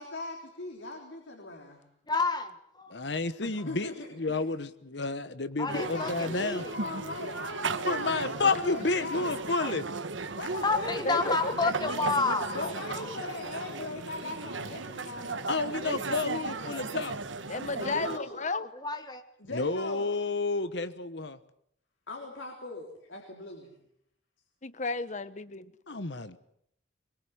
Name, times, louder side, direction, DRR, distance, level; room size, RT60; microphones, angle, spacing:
voice 1, 0.0-1.8 3.4-4.5 5.6-9.5 10.3-11.7 12.5-15.5 17.8-18.4 19.4-20.1 22.1-23.7, left 2 dB, 85° left, 1 dB, 3.8 m, -40 dB
voice 2, 2.1-2.5 2.8-2.9 5.6-6.7 9.6-9.7 10.6-12.7 12.9-13.0 16.7-16.8 18.8-19.2, left 3 dB, 20° left, 8 dB, 1.5 m, -30 dB
voice 3, 2.9-3.9 4.2-6.6 7.8-9.9 15.5-17.2 19.5-21.4 25.9-26.4, left 3 dB, 65° left, 13 dB, 1.2 m, -30 dB
sound 1, 5.7-18.2, right 4 dB, 90° right, 1.3 m, -36 dB
voice 4, 11.0-11.7 12.5-12.7 13.8-13.9 17.5-18.7 24.6-25.7, left 3 dB, 40° left, 15 dB, 1.0 m, -33 dB
22.5 x 22.0 x 8.0 m, 0.71 s
head